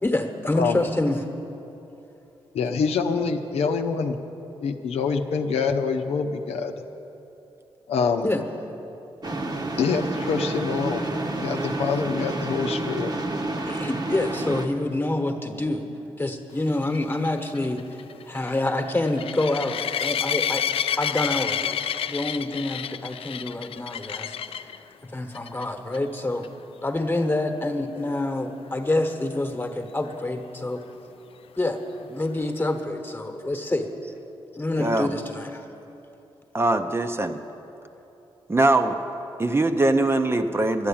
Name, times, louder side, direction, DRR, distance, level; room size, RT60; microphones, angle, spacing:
voice 1, 0.0-1.3 8.2-8.4 13.7-15.9 16.2-17.8 18.3-20.6 21.0-21.8 22.1-24.4 24.6-24.7 25.0-26.5 26.8-30.8 31.6-33.9 34.5-35.6, left 2 dB, 20° left, 5 dB, 1.2 m, -27 dB
voice 2, 2.5-4.2 4.6-6.7 7.9-8.3 9.8-11.1 11.4-13.1, left 5 dB, 90° left, 4 dB, 0.7 m, -25 dB
sound 1, 9.2-14.7, right 2 dB, 45° right, 1.0 m, -29 dB
sound 2, 16.8-24.8 25.3-25.6 25.9-26.0 26.4-26.5 30.1-30.2, left 9 dB, 65° left, 0.4 m, -29 dB
voice 3, 34.8-35.1 36.5-37.4 38.5-39.0 39.4-40.9, right 2 dB, 25° right, 7 dB, 0.7 m, -22 dB
12.0 x 9.0 x 8.6 m, 3.0 s
cardioid pair, 80°, 10 cm